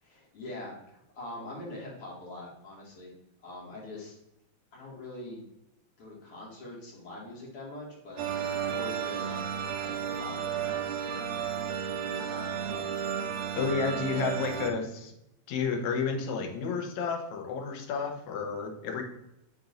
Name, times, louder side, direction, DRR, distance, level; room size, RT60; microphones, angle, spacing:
voice 1, 0.0-3.1 3.4-4.2 4.7-5.4 6.0-8.3 8.6-9.5 9.8-10.8 11.2-11.6 12.0-12.9, left 1 dB, 50° left, -5 dB, 3.2 m, -43 dB
sound 1, 8.2-14.7, right 8 dB, 70° right, 1.8 m, -33 dB
voice 2, 13.6-15.1 15.5-19.0, left 5 dB, 80° left, 3 dB, 2.3 m, -31 dB
8.6 x 5.0 x 2.6 m, 0.84 s
omnidirectional pair, 3.3 m